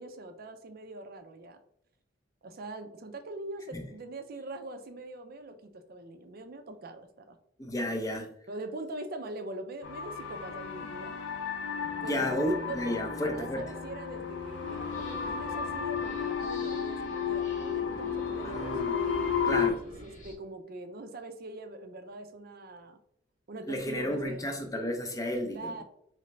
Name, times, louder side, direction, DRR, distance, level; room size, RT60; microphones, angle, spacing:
voice 1, 0.0-1.6 2.4-7.4 8.5-11.2 12.0-18.8 19.4-23.0 23.5-24.5 25.5-25.8, right 2 dB, 50° right, 7 dB, 0.5 m, -42 dB
voice 2, 7.6-8.3 12.0-13.6 18.4-18.9 19.4-19.8 23.7-25.8, left 1 dB, 15° left, 4 dB, 0.5 m, -32 dB
sound 1, 9.8-19.7, left 6 dB, 65° left, 0.7 m, -33 dB
sound 2, 14.6-20.3, left 1 dB, 40° left, 0.9 m, -48 dB
3.8 x 3.2 x 3.2 m, 0.70 s
head